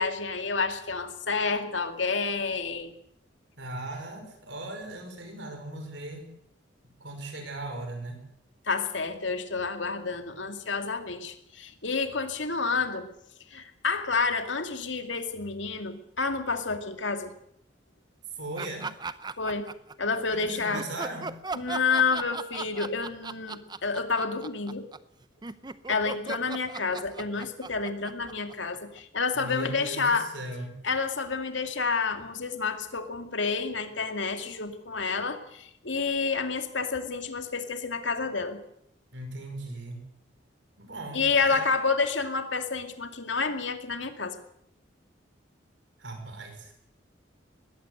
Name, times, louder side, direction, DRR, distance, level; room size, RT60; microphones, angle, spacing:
voice 1, 0.0-2.9 8.7-13.1 13.5-17.3 19.4-19.7 20.0-20.9 21.5-24.9 25.9-30.3 30.8-38.6 41.1-44.4, left 4 dB, 75° left, 7 dB, 2.4 m, -29 dB
voice 2, 3.6-6.3 7.0-8.2 18.4-18.9 20.3-21.3 29.4-30.7 39.1-40.0 40.8-41.7 46.0-46.7, right 2 dB, 75° right, 5 dB, 5.5 m, -38 dB
sound 1, 18.6-20.2 20.7-29.0, right 4 dB, 20° right, 0.7 m, -37 dB
20.5 x 16.0 x 8.0 m, 0.72 s
head